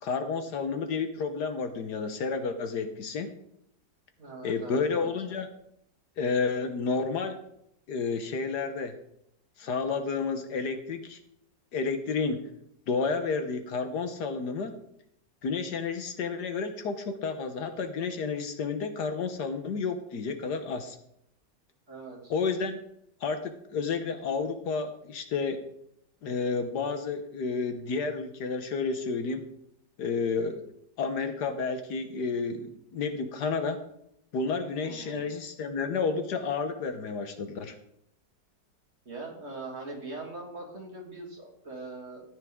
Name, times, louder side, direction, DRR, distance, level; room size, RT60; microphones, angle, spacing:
voice 1, 0.0-3.3 4.4-5.5 6.2-7.4 7.9-9.0 9.6-11.2 11.7-12.5 12.9-14.7 15.4-21.0 22.3-22.8 23.2-25.6 26.2-29.4 30.0-30.6 31.0-33.8 34.3-37.7, left 4 dB, 70° left, 8 dB, 1.5 m, -31 dB
voice 2, 4.2-5.2 21.9-22.3 34.8-35.3 39.0-42.2, right 3 dB, 35° right, -2 dB, 3.2 m, -41 dB
13.5 x 9.5 x 3.6 m, 0.75 s
omnidirectional pair, 1.9 m